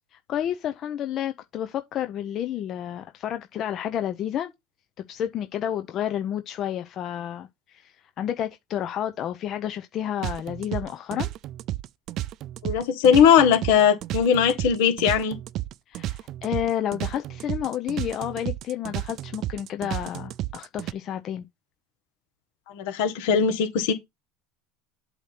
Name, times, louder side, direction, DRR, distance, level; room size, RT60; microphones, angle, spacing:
voice 1, 0.1-4.5 5.1-11.3 15.9-21.4, left 10 dB, 50° left, 0.6 m, -30 dB
sound 1, 10.2-20.9, right 14 dB, 55° right, 0.4 m, -32 dB
voice 2, 12.6-15.4 22.7-23.9, left 8 dB, 75° left, 1.6 m, -19 dB
8.0 x 2.9 x 5.8 m
supercardioid pair, 100°, 0 cm